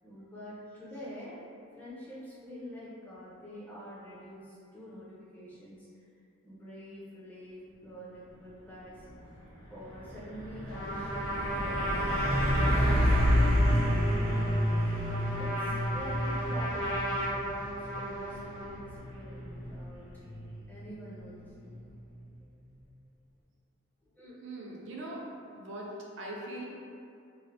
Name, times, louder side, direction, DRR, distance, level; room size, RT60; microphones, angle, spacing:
voice 1, 0.0-1.4 1.7-5.9 6.4-9.1 9.7-11.9 12.6-14.4 15.4-17.7 18.0-20.1 20.7-21.9 24.1-24.4, equal, 10° left, -9 dB, 0.5 m, -46 dB
Truck, 8.9-9.1 9.4-22.0, equal, 90° right, 0.7 m, -30 dB
Trumpet, 10.7-18.8, right 1 dB, 65° left, 0.5 m, -35 dB
voice 2, 24.4-25.3 25.5-26.6, right 1 dB, 60° right, -3 dB, 0.4 m, -41 dB
3.1 x 2.0 x 2.5 m, 2.5 s
head